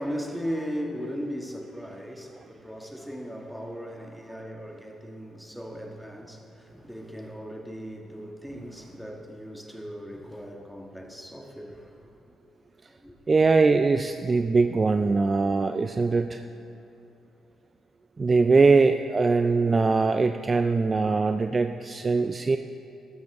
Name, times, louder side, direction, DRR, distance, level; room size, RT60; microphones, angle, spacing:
voice 1, 0.0-11.9 12.9-13.1, equal, ahead, 1.4 m, -37 dB
voice 2, 13.3-16.4 18.2-22.6, right 4 dB, 30° right, 0.3 m, -22 dB
13.0 x 12.5 x 3.5 m
cardioid pair, 90°, 0 cm